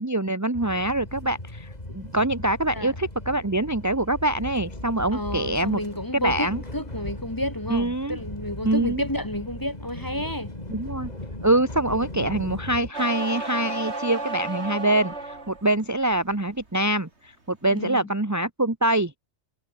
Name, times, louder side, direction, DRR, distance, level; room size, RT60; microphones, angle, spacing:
voice 1, 0.0-5.8 6.1-6.6 7.7-8.2 8.6-9.0 10.7-11.1 11.4-19.1, right 1 dB, 15° right, 1.3 m, -24 dB
sound 1, 0.5-12.9, left 1 dB, 30° left, 4.4 m, -37 dB
voice 2, 5.1-10.5 17.7-18.1, left 1 dB, 15° left, 2.3 m, -31 dB
sound 2, 12.9-15.6 16.1-16.6, right 3 dB, 55° right, 3.8 m, -33 dB
omnidirectional pair, 1.4 m